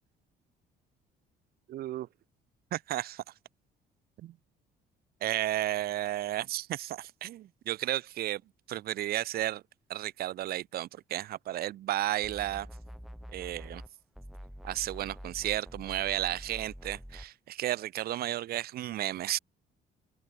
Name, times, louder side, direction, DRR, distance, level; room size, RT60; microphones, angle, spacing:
voice 1, 1.7-2.1 2.7-3.2 4.2-4.3 5.2-8.4 8.7-9.6 9.9-12.7 13.3-13.8 14.6-19.4, right 14 dB, 65° right, 1.2 m, -33 dB
sound 1, 12.2-13.9 14.1-17.3, equal, ahead, 4.6 m, -46 dB
open air
cardioid pair, 110°, 17 cm